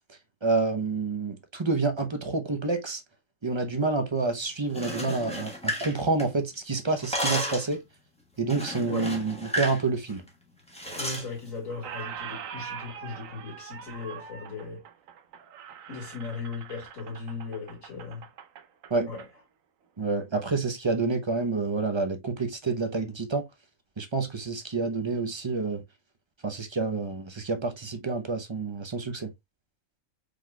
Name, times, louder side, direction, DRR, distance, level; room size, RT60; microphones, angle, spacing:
voice 1, 0.4-3.0 3.4-7.8 8.4-10.2 18.9-19.1 20.0-23.4 24.0-25.8 26.4-29.3, right 3 dB, 30° right, 0.6 m, -28 dB
sound 1, 4.6-6.5 6.8-7.7 8.5-9.8 10.1-10.3 10.7-11.3, equal, 5° left, 1.1 m, -32 dB
Squeak, 10.9-11.4 11.7-19.3, right 8 dB, 85° right, 1.1 m, -43 dB
voice 2, 11.0-14.8 15.9-18.3 19.1-19.3, left 4 dB, 80° left, 2.6 m, -37 dB
4.9 x 3.9 x 2.2 m
omnidirectional pair, 1.4 m